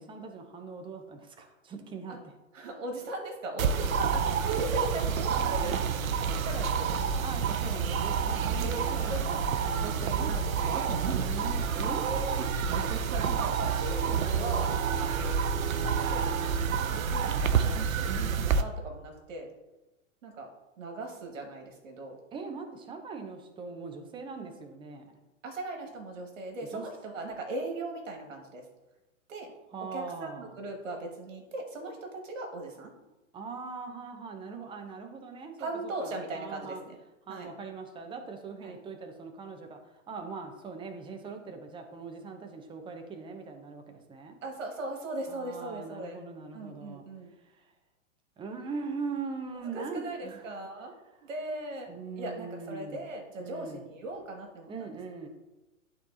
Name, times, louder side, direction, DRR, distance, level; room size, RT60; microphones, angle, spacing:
voice 1, 0.0-2.3 3.8-3.9 5.6-6.0 7.2-10.1 11.1-12.5 22.3-25.2 26.7-26.8 29.7-30.6 33.3-36.8 37.2-44.4 45.3-47.0 47.4-47.7 48.4-50.5 51.9-53.1 53.4-53.8 54.7-55.3, right 4 dB, 10° right, 5 dB, 0.7 m, -41 dB
voice 2, 2.5-5.8 6.2-7.2 8.6-9.5 9.8-11.0 13.3-14.7 15.0-19.5 20.2-20.5 20.8-22.2 25.4-28.7 29.3-29.5 29.9-32.9 35.6-37.0 37.3-37.5 38.6-38.8 44.4-46.2 46.5-47.3 49.7-50.9 51.2-54.7, right 2 dB, 65° right, 2 dB, 1.9 m, -39 dB
sound 1, 3.6-18.6, right 6 dB, 85° right, 0.6 m, -28 dB
12.0 x 4.0 x 2.8 m, 1.0 s
hypercardioid pair, 115°, 40 cm